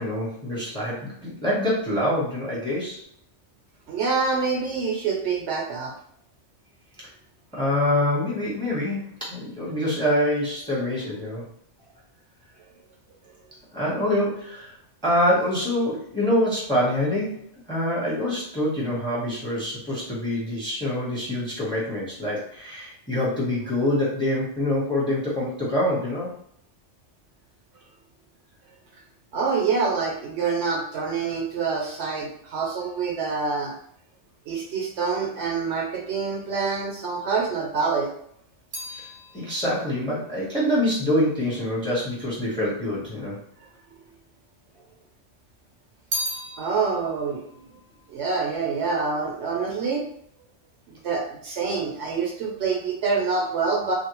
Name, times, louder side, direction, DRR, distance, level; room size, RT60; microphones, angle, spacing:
voice 1, 0.0-3.0 7.5-11.5 13.7-14.7 15.0-26.3 38.9-39.0 39.3-43.4, left 1 dB, 5° left, -6 dB, 0.7 m, -25 dB
voice 2, 3.9-5.9 29.3-33.7 34.5-38.1 46.6-47.4 48.1-50.0 51.0-53.9, right 4 dB, 70° right, 0 dB, 0.9 m, -26 dB
sound 1, 38.2-42.2 43.0-43.8 44.0-45.2 45.5-49.0 49.3-49.8, equal, 45° right, 0.5 m, -37 dB
2.6 x 2.0 x 2.9 m, 0.67 s
omnidirectional pair, 1.2 m